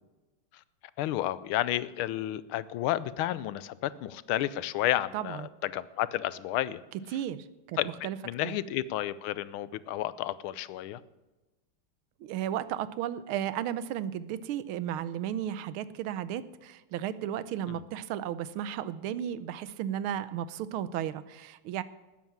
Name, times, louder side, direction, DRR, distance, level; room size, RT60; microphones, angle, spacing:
voice 1, 1.0-6.8 7.8-7.9 8.2-11.0 17.7-17.8, left 13 dB, 80° left, 17 dB, 1.4 m, -31 dB
voice 2, 5.1-5.5 7.1-7.8 8.0-8.2 8.4-8.6 12.2-21.8, right 10 dB, 90° right, 16 dB, 1.5 m, -34 dB
13.0 x 9.5 x 7.2 m, 1.1 s
omnidirectional pair, 2.3 m